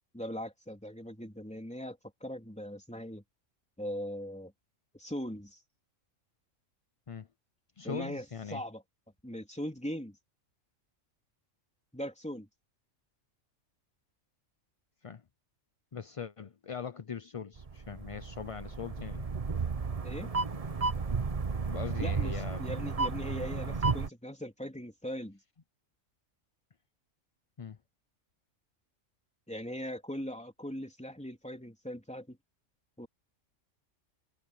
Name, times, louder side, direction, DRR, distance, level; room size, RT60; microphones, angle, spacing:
voice 1, 0.1-3.2 3.8-4.5 4.9-5.6 7.8-8.2 8.5-8.8 9.2-10.2 11.9-12.5 20.0-20.3 22.0-25.4 29.5-32.4 33.0-33.1, equal, 5° left, 3.4 m, -40 dB
voice 2, 7.8-8.6 15.0-15.2 15.9-19.3 21.7-22.6 27.6-27.8, left 6 dB, 40° left, 0.5 m, -41 dB
sound 1, 17.6-24.1, right 4 dB, 30° right, 1.0 m, -33 dB
omnidirectional pair, 1.3 m